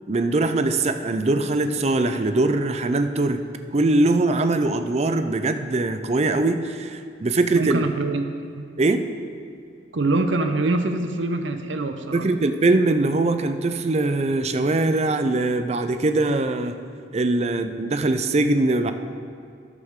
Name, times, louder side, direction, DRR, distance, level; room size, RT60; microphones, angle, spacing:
voice 1, 0.1-3.4 3.7-7.9 8.8-9.1 12.1-16.8 17.1-18.9, right 2 dB, 35° right, 8 dB, 0.4 m, -22 dB
voice 2, 7.5-8.3 8.6-8.7 9.9-12.3, right 2 dB, 70° right, 7 dB, 0.8 m, -24 dB
12.5 x 9.8 x 3.7 m, 2.4 s
head